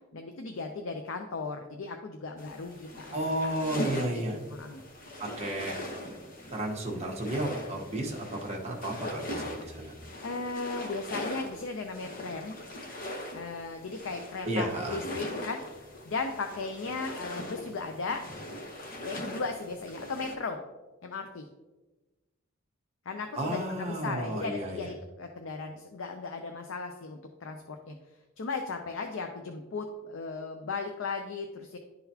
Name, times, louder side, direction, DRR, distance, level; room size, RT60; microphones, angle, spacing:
voice 1, 0.1-3.1 4.1-4.2 4.5-4.8 10.2-12.6 13.3-18.2 19.0-20.6 21.0-21.5 23.1-28.0 28.4-31.8, left 4 dB, 65° left, 5 dB, 0.5 m, -36 dB
sound 1, 2.4-20.4, left 1 dB, 40° left, 0.9 m, -41 dB
voice 2, 3.1-4.4 5.2-5.8 6.5-10.0 14.4-15.0 23.3-24.9, right 1 dB, 30° right, -1 dB, 1.1 m, -32 dB
11.5 x 3.9 x 2.8 m, 1.1 s
head